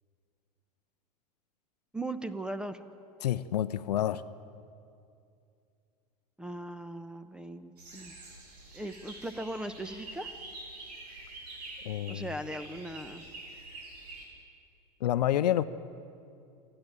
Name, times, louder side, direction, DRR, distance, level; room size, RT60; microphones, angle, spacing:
voice 1, 1.9-2.8 6.4-8.1 8.7-10.3 12.1-13.2, right 1 dB, 5° right, 11 dB, 1.0 m, -38 dB
voice 2, 3.2-4.2 11.8-12.3 15.0-15.6, left 12 dB, 80° left, 15 dB, 0.7 m, -28 dB
sound 1, 7.8-14.3, right 2 dB, 80° right, 5.3 m, -46 dB
28.0 x 10.0 x 9.4 m, 2.5 s
hypercardioid pair, 100°, 20 cm